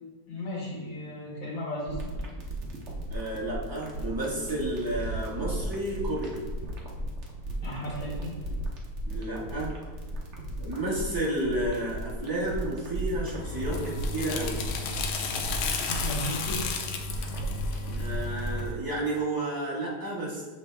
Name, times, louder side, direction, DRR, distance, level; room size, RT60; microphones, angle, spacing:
voice 1, 0.3-2.0 7.6-8.3 15.9-16.6, equal, 70° left, -5 dB, 2.6 m, -35 dB
sound 1, 1.9-18.7, right 1 dB, 50° right, 0.9 m, -35 dB
voice 2, 3.1-6.5 9.0-9.7 10.6-14.6 17.9-20.4, right 1 dB, 10° right, -6 dB, 1.1 m, -31 dB
Car / Engine starting, 3.8-3.9 4.5-10.7, right 3 dB, 85° right, 1.5 m, -47 dB
sound 2, 13.3-18.8, left 4 dB, 85° left, 1.5 m, -33 dB
6.8 x 4.7 x 3.4 m, 1.4 s
omnidirectional pair, 2.2 m